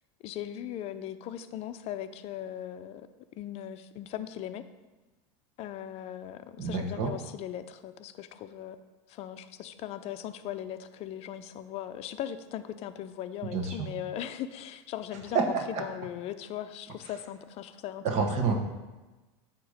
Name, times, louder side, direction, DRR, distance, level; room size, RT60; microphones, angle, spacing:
voice 1, 0.2-3.1 3.4-4.6 5.6-8.8 9.1-18.3, left 11 dB, 45° left, 10 dB, 0.5 m, -39 dB
voice 2, 6.6-7.1 13.5-13.9 15.3-15.8 18.0-18.5, right 5 dB, 50° right, 2 dB, 1.2 m, -28 dB
8.6 x 3.0 x 6.4 m, 1.2 s
supercardioid pair, 120°, 15 cm